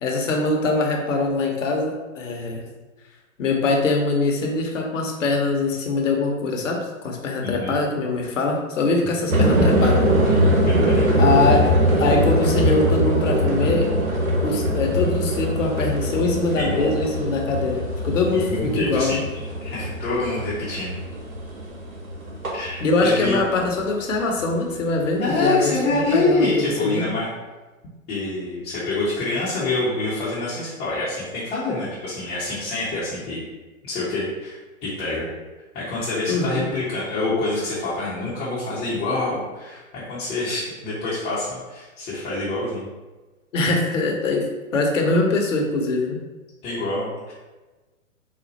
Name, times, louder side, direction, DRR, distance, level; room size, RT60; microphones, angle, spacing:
voice 1, 0.0-2.6 3.4-10.0 11.2-11.7 12.0-13.9 14.4-18.5 18.7-19.2 22.8-27.1 36.3-36.7 43.5-44.5 44.7-46.2, left 3 dB, 60° left, 1 dB, 1.0 m, -23 dB
voice 2, 7.4-7.8 10.7-11.1 16.7-16.9 18.3-19.2 19.6-21.0 22.5-23.4 25.2-27.3 28.1-33.4 33.8-35.3 35.7-42.9 46.6-47.3, left 2 dB, 15° left, -10 dB, 0.8 m, -26 dB
sound 1, 9.3-23.8 24.1-24.7, equal, 80° right, 1.3 m, -22 dB
4.2 x 2.3 x 4.0 m, 1.2 s
hypercardioid pair, 125°, 42 cm